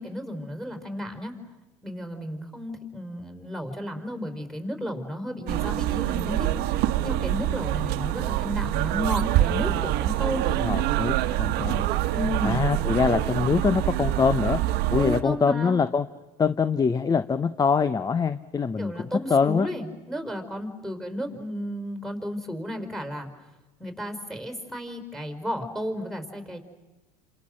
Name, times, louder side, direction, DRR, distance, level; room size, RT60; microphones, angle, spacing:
voice 1, 0.0-1.4 1.8-10.5 12.1-12.7 15.0-15.8 18.8-23.3 23.8-26.6, equal, ahead, 6 dB, 4.7 m, -33 dB
sound 1, 5.5-15.2, right 14 dB, 55° right, 1.3 m, -25 dB
voice 2, 10.6-11.9 12.4-14.6 14.9-16.1 16.4-19.7, left 5 dB, 20° left, 14 dB, 0.8 m, -24 dB
29.0 x 27.0 x 6.5 m, 1.1 s
hypercardioid pair, 90°, 20 cm